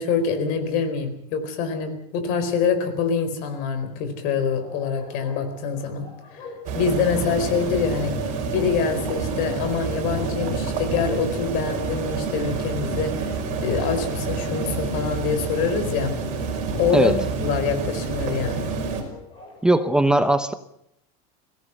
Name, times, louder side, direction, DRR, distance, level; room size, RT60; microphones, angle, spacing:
voice 1, 0.0-6.5 6.7-8.1 8.5-13.3 13.6-16.1 16.8-18.8, left 6 dB, 45° left, 8 dB, 4.3 m, -25 dB
Bark, 4.6-19.9, left 3 dB, 25° left, 6.4 m, -43 dB
sound 1, 6.6-19.0, right 4 dB, 40° right, 5.4 m, -28 dB
voice 2, 19.6-20.5, right 1 dB, 5° right, 10 dB, 0.7 m, -19 dB
22.5 x 17.0 x 8.1 m, 0.75 s
supercardioid pair, 170°, 20 cm